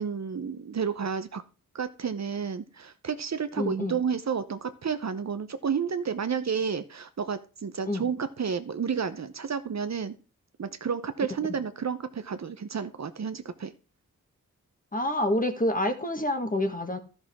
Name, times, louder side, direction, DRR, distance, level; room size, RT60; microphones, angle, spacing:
voice 1, 0.0-1.4 1.7-10.2 10.6-13.7, right 6 dB, 50° right, 11 dB, 0.7 m, -31 dB
voice 2, 3.6-4.0 7.9-8.0 14.9-17.0, left 1 dB, 25° left, 7 dB, 1.5 m, -27 dB
13.0 x 6.4 x 3.6 m, 0.34 s
cardioid pair, 45°, 34 cm